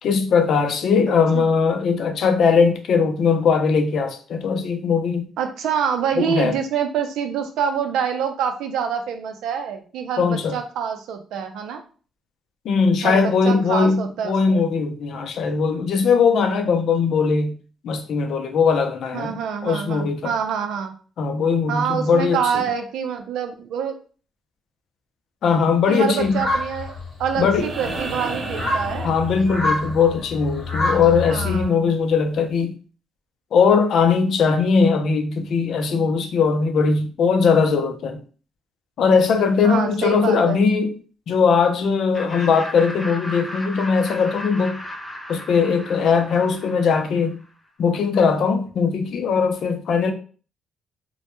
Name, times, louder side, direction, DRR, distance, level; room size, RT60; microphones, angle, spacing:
voice 1, 0.0-5.3 6.2-6.6 10.2-10.6 12.6-17.6 17.8-19.4 19.6-20.3 21.2-22.6 25.4-26.4 27.4-27.6 29.0-32.8 33.5-38.2 39.0-40.9 41.3-44.8 45.3-47.4 47.8-50.1, left 5 dB, 70° left, 0.4 m, -20 dB
voice 2, 5.4-11.8 13.0-14.6 19.1-20.9 21.7-24.0 25.6-26.9 27.2-29.2 31.2-31.9 39.6-40.7, right 7 dB, 85° right, 0.4 m, -26 dB
sound 1, 26.2-31.7, left 2 dB, 35° left, 1.0 m, -27 dB
sound 2, 27.5-29.8 31.7-31.8, right 3 dB, 50° right, 0.8 m, -32 dB
Laughter, 42.1-47.4, left 1 dB, 5° left, 0.4 m, -35 dB
2.1 x 2.1 x 2.9 m
cardioid pair, 90°, 0 cm